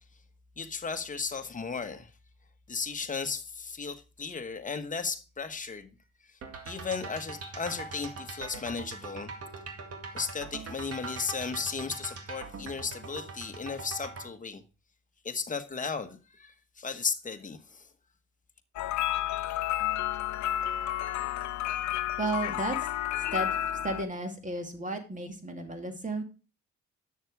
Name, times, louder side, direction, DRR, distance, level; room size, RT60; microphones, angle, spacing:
voice 1, 0.6-2.1 2.7-5.9 6.3-6.4 6.6-9.3 10.1-14.6 15.2-17.9, left 5 dB, 25° left, 1.2 m, -35 dB
sound 1, 6.4-14.3, right 4 dB, 50° right, 2.0 m, -42 dB
sound 2, 18.8-24.0, left 12 dB, 70° left, 0.7 m, -31 dB
voice 2, 22.2-22.9 23.3-23.6 23.8-26.2, right 2 dB, 25° right, 2.3 m, -33 dB
9.4 x 6.6 x 4.7 m
cardioid pair, 90°, 30 cm